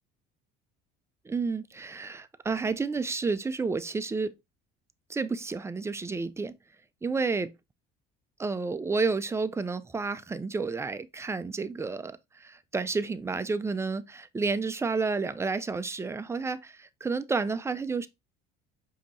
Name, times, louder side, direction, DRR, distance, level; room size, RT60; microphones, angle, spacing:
voice 1, 1.3-4.3 5.1-6.5 7.0-7.5 8.4-18.1, right 4 dB, 15° right, 0.4 m, -30 dB
5.0 x 2.8 x 3.0 m
supercardioid pair, 90°, 21 cm